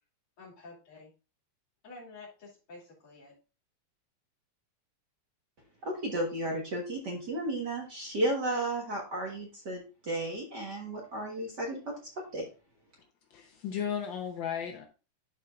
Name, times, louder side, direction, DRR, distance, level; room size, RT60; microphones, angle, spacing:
voice 1, 0.4-1.1 1.8-3.3, left 3 dB, 50° left, 3.4 m, -50 dB
voice 2, 5.8-11.8 12.2-12.4, right 1 dB, 45° right, 1.7 m, -33 dB
voice 3, 13.3-14.9, left 8 dB, 80° left, 1.0 m, -35 dB
12.5 x 4.6 x 2.4 m
omnidirectional pair, 3.3 m